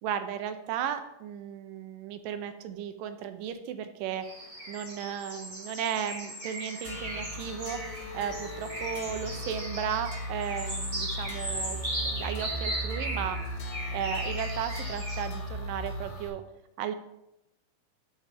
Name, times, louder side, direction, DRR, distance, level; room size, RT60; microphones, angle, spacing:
voice 1, 0.0-4.3 4.7-7.8 8.1-13.4 13.9-16.4 16.8-16.9, right 9 dB, 80° right, 9 dB, 2.2 m, -35 dB
sound 1, 4.2-15.3, right 1 dB, 20° right, 1.2 m, -37 dB
sound 2, 6.9-16.3, equal, 80° left, 3.3 m, -37 dB
sound 3, 7.9-16.1, left 2 dB, 60° left, 2.5 m, -57 dB
11.0 x 5.5 x 3.4 m, 0.86 s
omnidirectional pair, 4.0 m